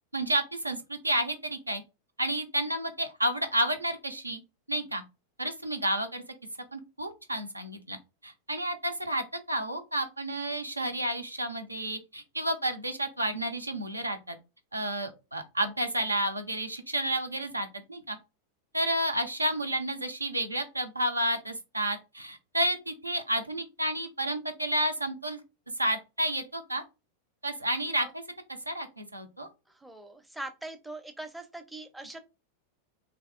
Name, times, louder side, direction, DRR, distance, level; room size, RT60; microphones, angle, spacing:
voice 1, 0.1-1.8 2.2-4.4 4.7-5.0 5.4-6.2 6.7-14.4 14.7-18.2 18.7-25.4 25.8-26.8 27.4-28.1 28.7-29.5, right 1 dB, 85° right, 6 dB, 0.4 m, -31 dB
voice 2, 29.8-32.2, right 2 dB, 5° right, 6 dB, 0.5 m, -42 dB
3.3 x 2.2 x 2.4 m, 0.27 s
figure-of-eight pair, 90°, 0 cm